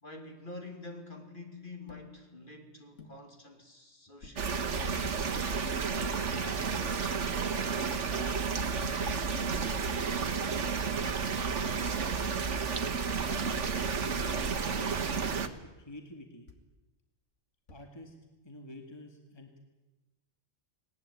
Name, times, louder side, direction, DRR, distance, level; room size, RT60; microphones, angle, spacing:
voice 1, 0.0-5.0, left 2 dB, 45° left, 3.0 m, -47 dB
sound 1, 1.9-2.1 3.0-3.2 4.2-4.5 5.3-5.5 6.2-6.6 7.4-7.5 7.7-8.7 10.5-10.9 11.6-11.9 12.8-13.1 14.0-14.3 15.1-15.4 16.5-16.7 17.7-18.1, left 2 dB, 75° left, 2.6 m, -55 dB
sound 2, 4.4-15.5, right 5 dB, 75° right, 1.6 m, -31 dB
voice 2, 6.3-8.3 9.0-9.9 10.9-11.3 11.6-12.5 13.2-15.5 15.8-16.5 17.7-18.2 18.4-19.6, left 1 dB, 20° left, 2.2 m, -48 dB
19.5 x 19.5 x 9.6 m
omnidirectional pair, 1.3 m